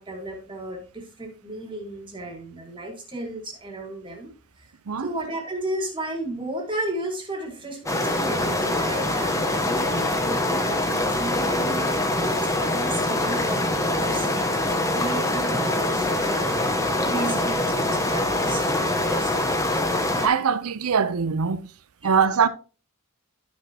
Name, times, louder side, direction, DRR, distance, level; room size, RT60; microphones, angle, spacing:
voice 1, 0.0-4.3 4.6-4.7 5.0-14.3 14.8-16.8 17.0-19.5 22.0-22.1, right 1 dB, 25° right, 1.8 m, -34 dB
Waterfall stream from distance, 7.9-20.3, left 1 dB, 15° left, 1.0 m, -24 dB
voice 2, 20.2-21.6 22.0-22.5, right 6 dB, 80° right, 0.6 m, -22 dB
11.5 x 6.1 x 2.8 m
head